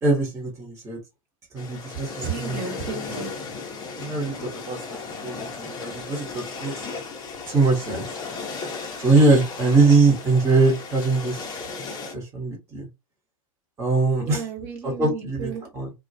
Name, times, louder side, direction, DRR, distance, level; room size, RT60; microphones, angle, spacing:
voice 1, 0.0-1.0 1.5-2.6 4.0-6.9 7.5-8.1 8.5-8.6 9.0-11.5 12.1-12.9 13.8-14.4 14.8-15.9, right 3 dB, 15° right, 1.0 m, -22 dB
sound 1, 1.6-12.1, left 4 dB, 20° left, 0.7 m, -35 dB
voice 2, 2.2-3.3 14.2-15.7, right 6 dB, 40° right, 1.1 m, -33 dB
2.3 x 2.2 x 2.6 m
hypercardioid pair, 115°, 18 cm